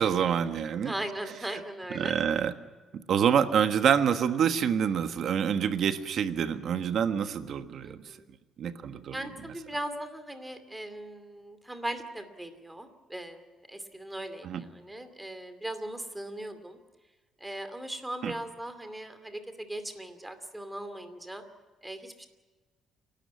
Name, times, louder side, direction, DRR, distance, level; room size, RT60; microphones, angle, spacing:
voice 1, 0.0-0.9 1.9-2.5 3.1-8.0 8.6-9.2 14.4-14.6 18.2-18.3, right 8 dB, 55° right, 9 dB, 1.4 m, -26 dB
voice 2, 0.8-2.1 7.9-8.3 9.1-16.8 17.4-21.4 21.8-22.3, right 1 dB, 10° right, 9 dB, 2.5 m, -39 dB
28.5 x 12.5 x 9.4 m, 1.3 s
cardioid pair, 120°, 0 cm